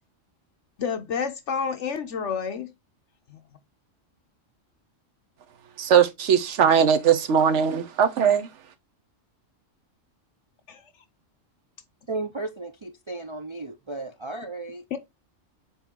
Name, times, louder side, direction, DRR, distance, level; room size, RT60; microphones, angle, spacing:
voice 1, 0.8-2.7 3.3-3.4 10.7-10.9 14.9-15.0, left 6 dB, 70° left, 1.1 m, -29 dB
voice 2, 5.8-8.5, right 8 dB, 65° right, 1.1 m, -20 dB
voice 3, 12.1-14.8, right 2 dB, 45° right, 0.4 m, -34 dB
7.2 x 4.2 x 3.6 m
omnidirectional pair, 1.3 m